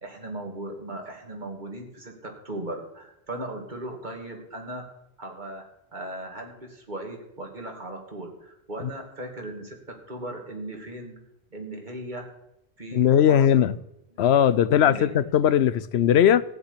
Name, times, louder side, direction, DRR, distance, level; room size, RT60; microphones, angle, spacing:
voice 1, 0.0-4.8 5.2-11.2 11.5-12.3 12.8-13.7 14.8-15.1, right 1 dB, 45° right, 2.7 m, -37 dB
voice 2, 12.9-13.7 14.2-16.4, left 9 dB, 80° left, 0.9 m, -19 dB
15.0 x 6.0 x 9.9 m
omnidirectional pair, 1.1 m